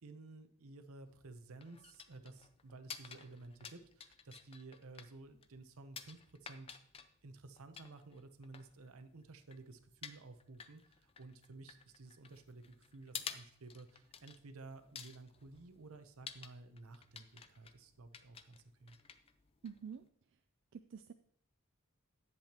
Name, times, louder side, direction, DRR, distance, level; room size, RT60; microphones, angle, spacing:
voice 1, 0.0-6.8 7.2-19.0, right 3 dB, 75° right, 9 dB, 0.8 m, -54 dB
sound 1, 1.1-20.1, left 7 dB, 25° left, 0.4 m, -53 dB
voice 2, 19.6-20.4 20.7-21.1, right 6 dB, 55° right, 8 dB, 0.3 m, -49 dB
10.5 x 7.8 x 2.9 m, 0.68 s
head